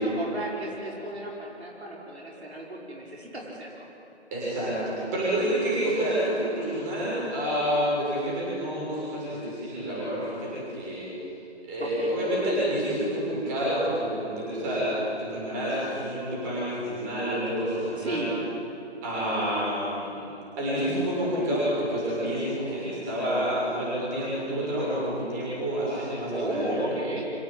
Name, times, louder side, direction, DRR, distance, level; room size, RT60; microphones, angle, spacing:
voice 1, 0.0-3.9 11.8-12.1 18.0-18.4 26.3-27.3, right 1 dB, 65° right, -3 dB, 5.5 m, -34 dB
voice 2, 4.3-11.1 11.6-18.3 19.0-20.2 20.6-26.8, equal, 15° right, -8 dB, 6.7 m, -28 dB
25.5 x 17.0 x 8.9 m, 2.6 s
figure-of-eight pair, 160°, 35 cm